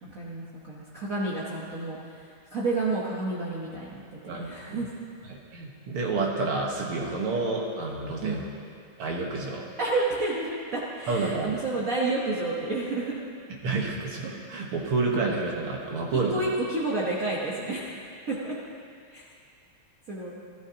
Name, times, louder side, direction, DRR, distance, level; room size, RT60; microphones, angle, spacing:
voice 1, 0.0-4.9 8.2-8.5 9.8-13.2 16.1-18.0 18.3-18.5 19.1-19.2 20.1-20.4, right 2 dB, 45° right, -6 dB, 1.4 m, -30 dB
voice 2, 4.3-4.8 5.3-8.4 9.0-9.6 11.1-11.5 13.6-16.4, right 3 dB, 85° right, -1 dB, 2.3 m, -29 dB
14.0 x 13.5 x 2.9 m, 2.3 s
omnidirectional pair, 2.3 m